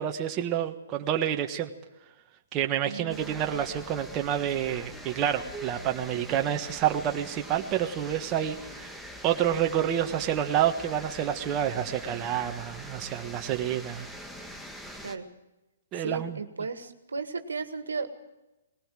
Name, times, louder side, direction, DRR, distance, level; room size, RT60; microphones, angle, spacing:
voice 1, 0.0-1.7 2.5-8.9 9.2-14.1 15.9-16.4, right 10 dB, 30° right, 4 dB, 1.4 m, -28 dB
voice 2, 2.8-3.7 15.0-15.3 15.9-18.1, right 4 dB, 85° right, 8 dB, 1.8 m, -35 dB
sound 1, 3.1-15.2, equal, 5° left, 1.6 m, -44 dB
20.0 x 17.5 x 7.6 m, 0.99 s
hypercardioid pair, 135°, 0 cm